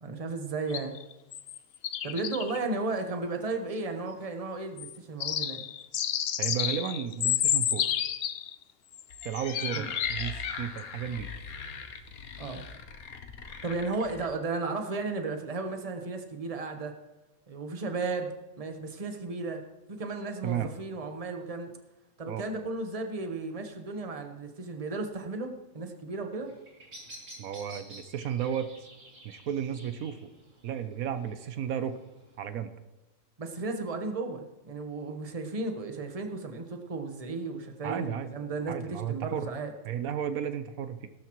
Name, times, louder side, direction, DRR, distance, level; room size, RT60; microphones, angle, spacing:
voice 1, 0.0-1.0 2.0-5.6 9.7-9.9 12.4-12.6 13.6-16.9 17.5-19.6 19.9-21.7 22.2-26.5 33.4-39.7, right 3 dB, 30° right, 5 dB, 1.1 m, -34 dB
sound 1, 0.7-1.6 1.8-2.6 4.8-4.9 5.2-8.6 8.9-10.4 10.8-10.9, left 10 dB, 60° left, 0.7 m, -30 dB
voice 2, 6.4-7.9 9.2-11.3 20.4-20.7 22.3-22.4 27.4-28.7 29.2-30.3 30.6-32.0 32.4-32.7 37.8-38.3 38.7-39.5 39.8-41.1, right 9 dB, 80° right, 10 dB, 1.2 m, -33 dB
sound 2, 9.1-14.3, left 6 dB, 90° left, 1.4 m, -39 dB
Bird vocalization bird call bird song, 26.4-32.4, right 1 dB, 50° right, 3.2 m, -51 dB
17.5 x 12.5 x 3.1 m, 1.0 s
omnidirectional pair, 1.5 m